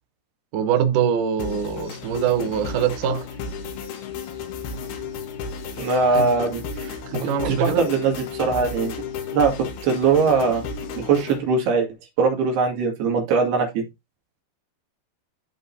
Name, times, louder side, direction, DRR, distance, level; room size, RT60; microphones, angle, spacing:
voice 1, 0.5-3.3 6.1-6.3 7.1-7.8, right 8 dB, 85° right, 1.8 m, -23 dB
sound 1, 1.4-11.4, left 5 dB, 65° left, 3.1 m, -33 dB
voice 2, 5.8-8.9 9.3-9.5 9.8-10.6 11.0-11.9 12.2-13.8, right 4 dB, 65° right, 4.1 m, -21 dB
14.0 x 5.3 x 2.7 m
omnidirectional pair, 5.1 m